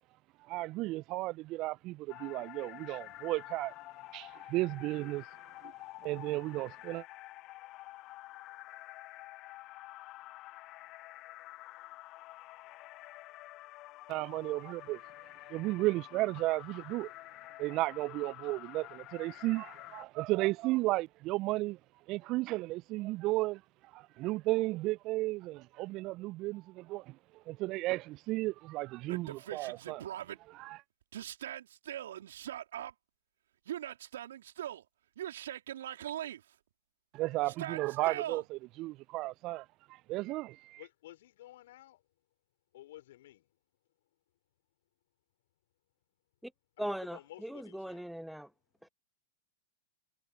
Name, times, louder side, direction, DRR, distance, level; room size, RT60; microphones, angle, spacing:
voice 1, 0.5-3.7 4.1-5.2 6.0-7.0 14.1-15.0 15.5-17.1 17.6-21.8 22.1-23.6 23.9-27.2 27.5-30.0 30.5-30.8 37.1-39.6 40.1-40.8, right 19 dB, 45° right, 0.4 m, -34 dB
sound 1, 2.1-20.0, left 18 dB, 40° left, 7.4 m, -49 dB
Yell, 29.1-30.4 31.1-32.9 33.7-34.8 35.2-36.4 37.4-38.4, right 11 dB, 70° right, 3.5 m, -41 dB
voice 2, 40.8-42.0 42.7-43.4 47.1-48.1, left 14 dB, 65° left, 4.3 m, -53 dB
voice 3, 46.8-48.5 48.8-48.9, equal, ahead, 1.0 m, -39 dB
hypercardioid pair, 95°, 0 cm